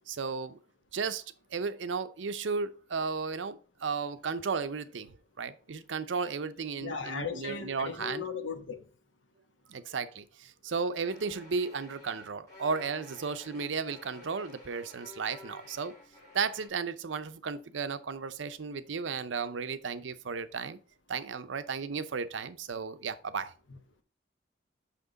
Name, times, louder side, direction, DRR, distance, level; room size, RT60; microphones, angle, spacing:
voice 1, 0.1-0.6 0.9-1.2 1.5-8.2 9.7-16.0 16.3-20.8 21.1-23.5, right 5 dB, 90° right, 0.6 m, -34 dB
voice 2, 6.8-8.8 23.7-23.8, left 5 dB, 90° left, 1.1 m, -37 dB
sound 1, 11.0-16.7, left 2 dB, 20° left, 4.2 m, -52 dB
5.9 x 5.8 x 3.9 m
head